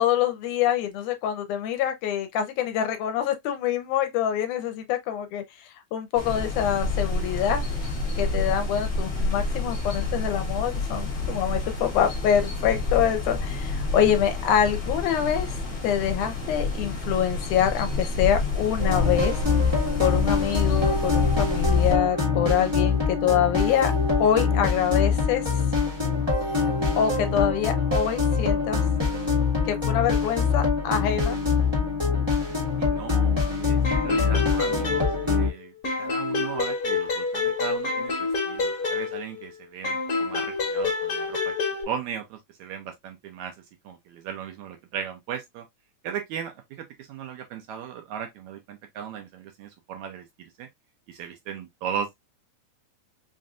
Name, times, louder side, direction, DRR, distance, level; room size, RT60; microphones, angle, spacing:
voice 1, 0.0-7.6 8.2-15.6 15.8-19.4 20.0-23.9 24.2-25.6 27.0-28.8 29.7-31.4, left 9 dB, 80° left, 2.0 m, -25 dB
sound 1, 6.1-21.9, left 2 dB, 60° left, 0.7 m, -29 dB
sound 2, 18.8-35.5, left 5 dB, 30° right, 0.4 m, -24 dB
voice 2, 32.8-35.7 36.0-41.5 41.9-43.6 43.8-45.7 46.0-50.7 51.1-52.2, right 8 dB, 75° right, 1.8 m, -37 dB
sound 3, 33.8-35.5 35.8-39.5 39.8-41.8, left 4 dB, 45° left, 1.2 m, -27 dB
5.2 x 2.6 x 2.4 m
omnidirectional pair, 3.7 m